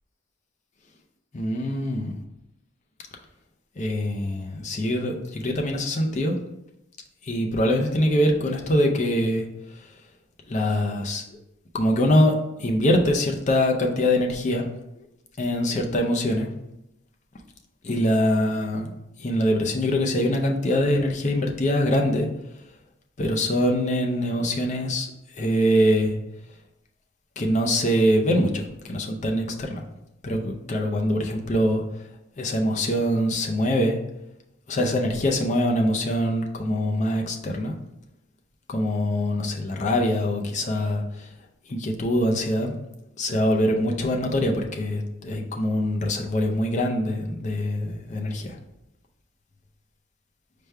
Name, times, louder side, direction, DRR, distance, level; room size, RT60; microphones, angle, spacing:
voice 1, 1.3-2.1 3.8-6.4 7.2-9.5 10.5-11.4 11.7-14.7 15.4-16.5 17.8-18.9 19.2-22.3 23.2-25.1 25.4-26.2 27.4-29.8 30.2-31.8 32.4-34.0 34.7-37.7 38.7-41.3 41.7-42.7 43.2-48.6, equal, 35° left, 1 dB, 0.5 m, -23 dB
5.0 x 2.2 x 4.5 m, 0.87 s
head